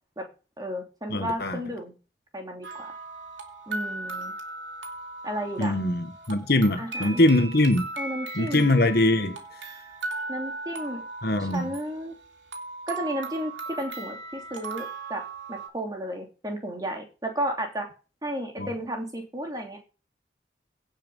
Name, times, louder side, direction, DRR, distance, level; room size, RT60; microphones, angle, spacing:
voice 1, 0.6-1.9 2.3-2.9 3.7-4.3 5.2-5.7 6.8-7.2 8.0-8.7 10.3-11.0 11.4-12.1 12.9-15.2 15.5-17.9 18.2-19.8, equal, 20° right, 3.0 m, -33 dB
voice 2, 1.1-1.6 5.6-7.9 8.3-9.4 11.2-11.7 18.6-18.7, left 1 dB, 55° left, 1.5 m, -22 dB
sound 1, 2.6-15.7, right 3 dB, 85° right, 2.8 m, -37 dB
16.5 x 5.9 x 5.5 m
head